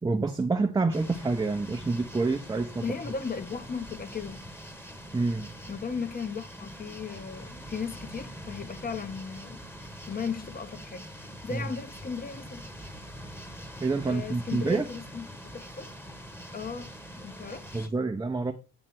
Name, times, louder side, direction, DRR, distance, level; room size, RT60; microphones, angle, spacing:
voice 1, 0.0-2.8 5.1-5.5 11.5-11.6 13.8-14.9 17.7-18.5, right 3 dB, 10° right, 0.7 m, -27 dB
sound 1, 0.9-17.9, equal, 5° left, 1.3 m, -44 dB
voice 2, 2.8-4.5 5.7-9.6 10.1-11.1 11.4-12.7 14.1-15.9 16.5-17.9, left 5 dB, 25° left, 1.0 m, -36 dB
8.8 x 3.3 x 6.0 m
supercardioid pair, 85°, 35 cm